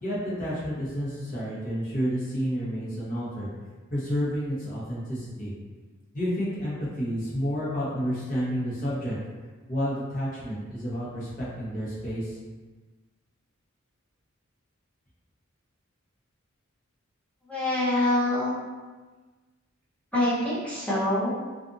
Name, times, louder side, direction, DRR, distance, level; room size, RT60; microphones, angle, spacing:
voice 1, 0.0-3.5 3.9-5.5 6.1-9.2 9.7-12.4, equal, 40° left, -8 dB, 1.0 m, -30 dB
voice 2, 17.5-18.6 20.1-21.3, left 1 dB, 5° left, -10 dB, 0.8 m, -25 dB
2.5 x 2.4 x 2.6 m, 1.3 s
head